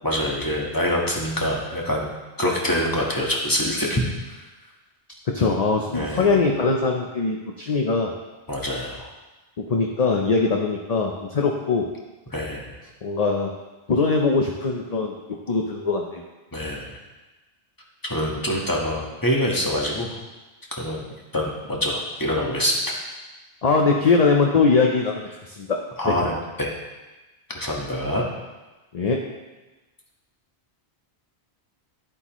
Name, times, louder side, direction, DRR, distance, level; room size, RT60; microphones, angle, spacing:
voice 1, 0.0-2.1 2.4-4.0 4.3-4.4 5.9-6.4 8.5-9.1 12.3-12.7 16.5-17.0 18.0-20.2 20.7-21.0 21.3-23.0 26.0-26.7 27.5-28.2, left 1 dB, 20° left, -2 dB, 1.5 m, -25 dB
voice 2, 5.3-8.1 9.6-11.9 13.0-13.5 13.9-15.2 15.5-16.2 23.6-25.8 26.1-26.2 28.9-29.2, left 4 dB, 40° left, 1 dB, 0.7 m, -21 dB
11.5 x 8.0 x 3.1 m, 1.1 s
omnidirectional pair, 1.1 m